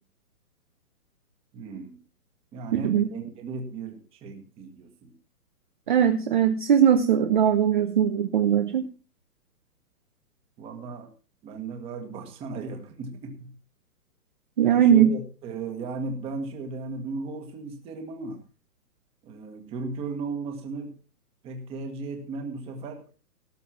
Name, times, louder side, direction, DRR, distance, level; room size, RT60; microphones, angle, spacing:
voice 1, 1.5-2.0 2.5-5.1 10.6-11.1 11.4-13.5 14.6-18.4 19.2-20.9 21.4-23.0, right 4 dB, 10° right, 6 dB, 1.7 m, -36 dB
voice 2, 2.7-3.1 5.9-8.9 14.6-15.1, right 9 dB, 30° right, 8 dB, 0.9 m, -20 dB
18.0 x 6.9 x 5.9 m, 0.35 s
hypercardioid pair, 165°, 47 cm